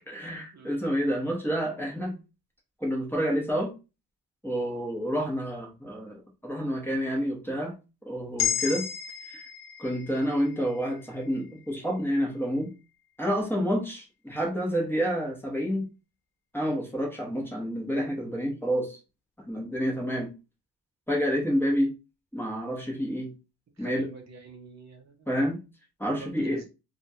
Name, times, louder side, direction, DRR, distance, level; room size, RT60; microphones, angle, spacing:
voice 1, 0.1-2.2 2.8-3.7 4.4-7.7 8.1-8.9 9.3-9.4 9.8-12.7 13.2-15.9 16.5-19.0 19.5-20.3 21.1-21.9 22.3-23.3 23.8-24.1 25.3-25.6 26.0-26.6, equal, 5° left, -3 dB, 0.7 m, -29 dB
sound 1, 8.4-12.6, left 9 dB, 80° left, 0.5 m, -34 dB
voice 2, 23.8-25.4 26.0-26.6, right 3 dB, 45° right, 3 dB, 0.6 m, -46 dB
2.8 x 2.3 x 2.7 m, 0.28 s
wide cardioid pair, 155°, 38 cm